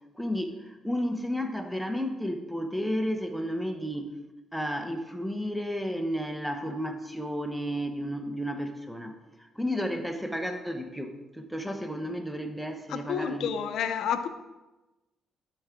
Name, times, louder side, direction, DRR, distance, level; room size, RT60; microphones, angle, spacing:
voice 1, 0.1-4.1 4.5-13.5, equal, ahead, 5 dB, 0.9 m, -32 dB
voice 2, 12.9-14.3, left 8 dB, 75° left, 10 dB, 0.6 m, -30 dB
12.5 x 4.6 x 3.7 m, 1.1 s
cardioid pair, 90°, 0 cm